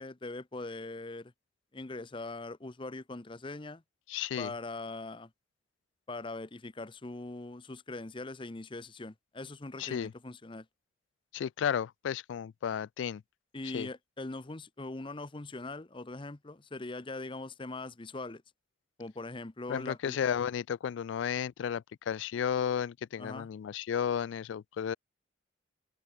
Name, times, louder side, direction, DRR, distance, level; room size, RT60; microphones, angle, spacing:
voice 1, 0.0-1.3 1.7-3.8 4.4-5.3 6.1-10.7 13.5-18.4 19.0-20.2 23.2-23.5, left 2 dB, 25° left, 0.8 m, -41 dB
voice 2, 4.1-4.5 9.8-10.1 11.3-13.2 13.7-13.9 19.7-24.9, left 8 dB, 75° left, 0.3 m, -33 dB
head